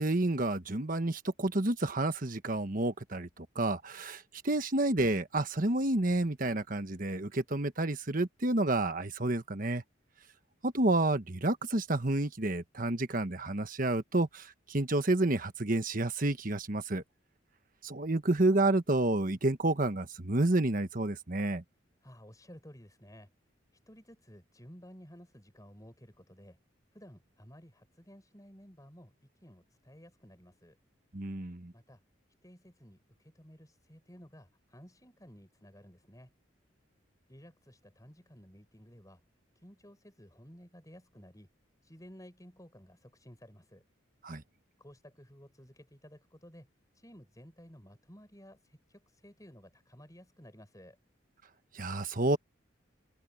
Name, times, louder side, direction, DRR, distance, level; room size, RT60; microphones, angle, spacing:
voice 1, 0.0-9.8 10.6-17.0 17.8-21.6 31.1-31.7 44.2-44.4 51.7-52.4, right 2 dB, 45° right, 1.3 m, -30 dB
voice 2, 22.0-23.3 23.9-26.6 26.9-30.8 31.7-32.0 32.4-36.3 37.3-39.2 39.6-41.5 41.8-43.8 44.8-46.7 46.9-51.0, equal, 15° left, 6.9 m, -54 dB
head